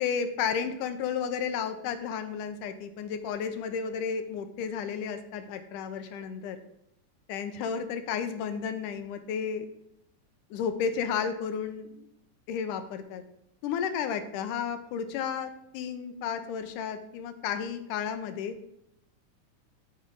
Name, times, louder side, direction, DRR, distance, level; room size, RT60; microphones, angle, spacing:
voice 1, 0.0-6.6 7.3-9.7 10.5-12.1 12.5-13.2 13.6-18.6, left 7 dB, 85° left, 8 dB, 2.3 m, -32 dB
14.0 x 5.4 x 3.7 m, 0.80 s
omnidirectional pair, 3.7 m